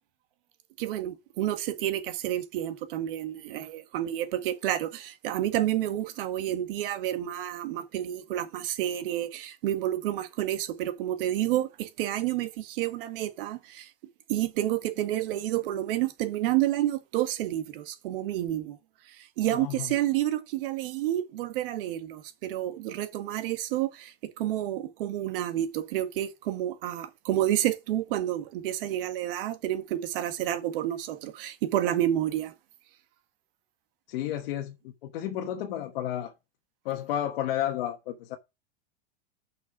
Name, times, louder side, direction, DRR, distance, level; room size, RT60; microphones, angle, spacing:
voice 1, 0.8-12.5 12.8-13.6 14.3-18.7 19.4-23.9 24.4-32.5, right 13 dB, 60° right, 1.7 m, -29 dB
voice 2, 19.5-20.0 34.1-36.3 36.8-38.4, left 11 dB, 65° left, 1.3 m, -32 dB
6.7 x 5.9 x 5.9 m
supercardioid pair, 170°, 31 cm